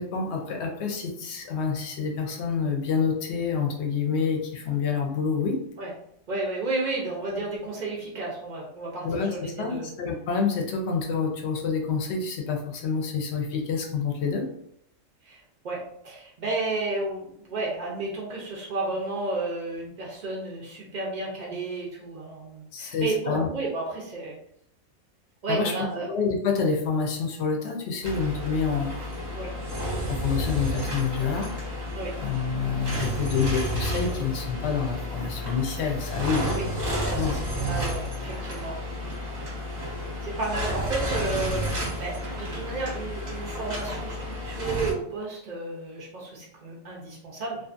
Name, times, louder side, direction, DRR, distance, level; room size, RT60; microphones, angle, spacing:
voice 1, 0.0-5.6 9.0-14.5 22.7-23.5 25.5-25.7 26.1-29.0 30.1-31.5 32.2-36.5 37.0-37.3, left 5 dB, 65° left, 2 dB, 0.7 m, -27 dB
voice 2, 6.3-9.9 15.2-24.4 25.4-26.1 29.3-29.5 31.9-32.1 36.5-36.7 37.1-38.7 40.2-47.6, right 3 dB, 70° right, -3 dB, 0.4 m, -32 dB
sound 1, 28.0-44.9, equal, 40° right, 0.7 m, -31 dB
2.5 x 2.4 x 2.4 m, 0.71 s
omnidirectional pair, 1.4 m